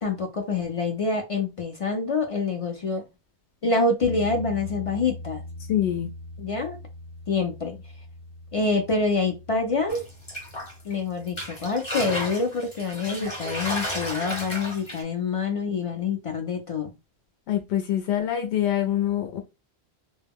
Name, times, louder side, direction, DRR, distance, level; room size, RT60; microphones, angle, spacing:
voice 1, 0.0-3.0 3.6-5.4 6.4-6.8 7.3-7.8 8.5-10.0 10.8-16.9, left 3 dB, 55° left, 0.4 m, -26 dB
sound 1, 4.0-12.9, left 1 dB, 50° right, 0.5 m, -41 dB
voice 2, 5.7-6.1 13.1-13.2 17.5-19.4, left 11 dB, 85° left, 0.9 m, -25 dB
sound 2, 9.9-10.9 11.3-15.0, equal, 30° left, 0.8 m, -33 dB
2.2 x 2.0 x 3.5 m
omnidirectional pair, 1.1 m